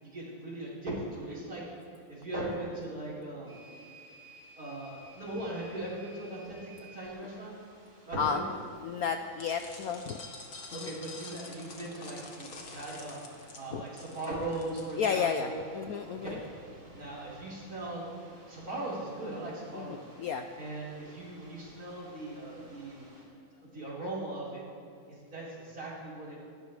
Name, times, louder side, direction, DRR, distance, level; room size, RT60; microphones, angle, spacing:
voice 1, 0.0-1.6 2.1-3.5 4.6-7.5 8.1-8.4 10.7-15.6 16.0-16.4 16.9-20.0 20.5-23.0 23.6-24.6 25.1-26.4, right 2 dB, 45° right, -7 dB, 5.1 m, -39 dB
sound 1, 3.5-23.3, right 1 dB, 70° right, 4.8 m, -56 dB
voice 2, 8.8-10.2 10.7-10.9 13.7-13.8 15.0-16.4 19.7-20.5, left 6 dB, 85° left, 6 dB, 0.8 m, -32 dB
sound 2, 9.4-15.4, left 3 dB, 50° left, 2.0 m, -47 dB
25.5 x 13.0 x 3.3 m, 2.3 s
omnidirectional pair, 2.3 m